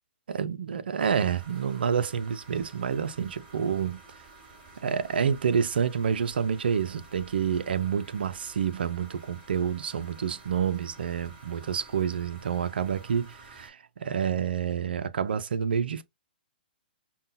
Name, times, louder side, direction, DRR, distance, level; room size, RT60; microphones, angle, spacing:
voice 1, 0.3-4.0 4.8-16.0, right 7 dB, 75° right, 0.5 m, -28 dB
sound 1, 1.0-13.7, right 3 dB, 35° right, 2.9 m, -51 dB
5.3 x 2.3 x 2.7 m
hypercardioid pair, 130°, 5 cm